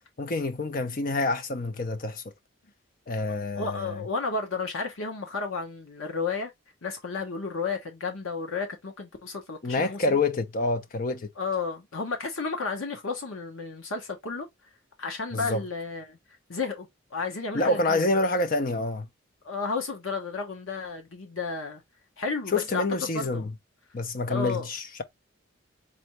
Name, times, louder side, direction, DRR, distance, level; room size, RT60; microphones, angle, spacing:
voice 1, 0.2-2.2 3.1-4.0 9.6-11.3 15.3-15.6 17.5-19.1 22.5-23.5 23.9-25.0, left 2 dB, 45° left, 0.5 m, -27 dB
voice 2, 3.6-6.5 6.8-10.2 11.4-14.5 15.0-16.2 16.5-18.1 19.4-21.8 22.2-23.5 24.3-24.7, left 4 dB, 80° left, 1.0 m, -32 dB
4.3 x 2.6 x 3.0 m
head